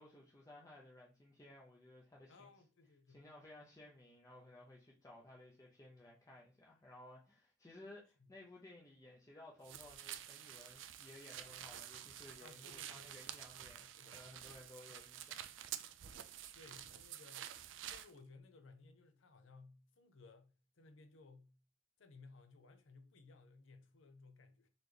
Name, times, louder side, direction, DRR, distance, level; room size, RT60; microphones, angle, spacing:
voice 1, 0.0-2.5 3.1-15.4, left 1 dB, 15° left, 0.6 m, -58 dB
voice 2, 2.3-3.3 8.2-8.3 12.4-13.1 14.0-14.2 14.9-15.1 16.5-17.6 17.9-21.5 22.0-24.7, left 3 dB, 75° left, 0.7 m, -61 dB
sound 1, 9.6-18.1, right 11 dB, 70° right, 0.4 m, -50 dB
4.1 x 2.9 x 3.3 m
head